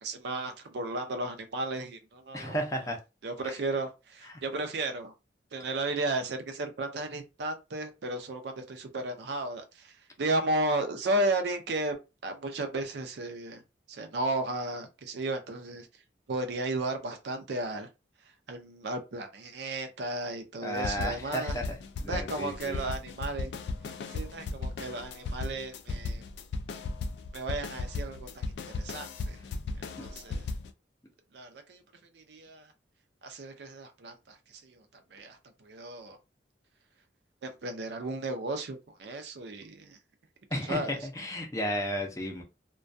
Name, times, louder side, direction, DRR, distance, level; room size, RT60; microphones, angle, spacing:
voice 1, 0.0-2.6 3.2-5.1 5.5-12.0 12.2-13.6 13.9-15.9 16.3-17.9 18.5-21.6 22.1-23.5 24.1-26.2 27.3-28.4 28.8-29.4 30.0-30.4 31.3-31.8 32.1-32.7 33.2-34.8 35.1-36.2 37.4-40.0 40.7-41.0, right 2 dB, 70° right, 0.5 m, -34 dB
voice 2, 2.3-3.0 3.4-3.6 4.3-4.4 20.6-22.8 40.5-42.4, equal, 20° left, 0.5 m, -33 dB
sound 1, 20.8-30.7, left 3 dB, 70° left, 0.3 m, -36 dB
2.2 x 2.2 x 2.5 m
head